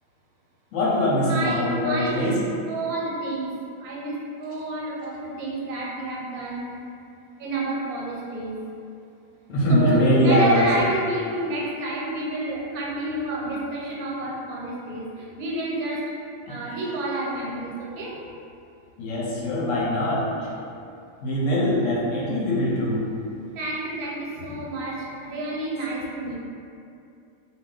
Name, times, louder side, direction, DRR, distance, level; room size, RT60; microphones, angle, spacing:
voice 1, 0.7-2.4 9.5-10.9 16.5-16.8 19.0-20.5 21.2-23.1, equal, 70° left, -6 dB, 0.8 m, -22 dB
voice 2, 1.3-2.4 2.7-3.5 3.8-6.8 7.4-8.6 9.7-16.1 16.5-18.2 23.5-26.4, right 2 dB, 90° right, -4 dB, 1.1 m, -30 dB
2.3 x 2.2 x 3.7 m, 2.5 s
omnidirectional pair, 1.5 m